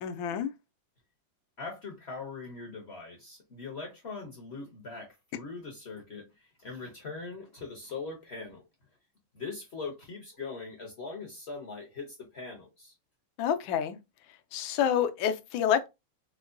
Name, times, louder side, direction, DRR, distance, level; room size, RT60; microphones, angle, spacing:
voice 1, 0.0-0.5 13.4-14.0 14.5-15.9, left 9 dB, 85° left, 1.4 m, -28 dB
voice 2, 1.6-8.6 9.3-12.9, left 4 dB, 55° left, 0.7 m, -41 dB
4.6 x 2.2 x 2.5 m
omnidirectional pair, 2.1 m